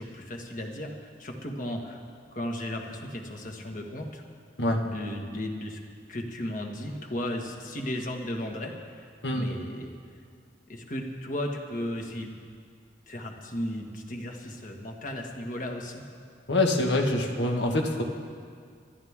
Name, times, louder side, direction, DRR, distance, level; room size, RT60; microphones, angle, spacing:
voice 1, 0.0-2.0 2.3-4.2 4.8-5.8 6.1-9.9 10.7-12.4 13.1-16.1, left 1 dB, 50° left, 1 dB, 1.7 m, -35 dB
voice 2, 16.5-18.0, left 2 dB, 75° left, 2 dB, 1.7 m, -25 dB
26.0 x 11.5 x 3.7 m, 2.1 s
head